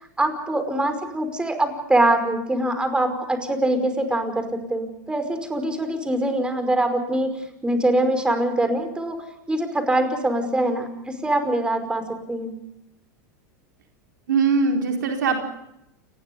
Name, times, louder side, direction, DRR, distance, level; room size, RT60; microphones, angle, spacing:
voice 1, 0.2-7.3 7.6-9.2 9.5-12.6, right 1 dB, 10° right, 8 dB, 5.3 m, -23 dB
voice 2, 14.3-15.4, right 5 dB, 85° right, 2 dB, 4.4 m, -21 dB
29.0 x 20.5 x 5.4 m, 0.82 s
hypercardioid pair, 105°, 10 cm